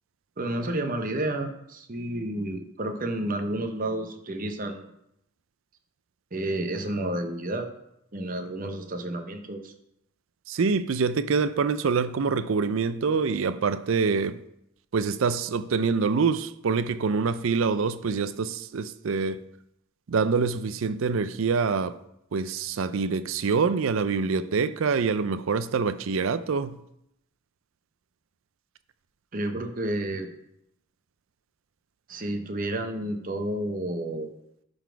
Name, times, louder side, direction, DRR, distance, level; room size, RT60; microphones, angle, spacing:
voice 1, 0.4-4.9 6.3-7.7 8.1-9.7 29.3-30.3 32.1-34.3, right 1 dB, 40° right, 0.8 m, -30 dB
voice 2, 10.5-14.4 14.9-19.4 20.1-22.0 22.3-26.8, right 5 dB, 70° right, 0.4 m, -25 dB
11.5 x 4.1 x 4.6 m
head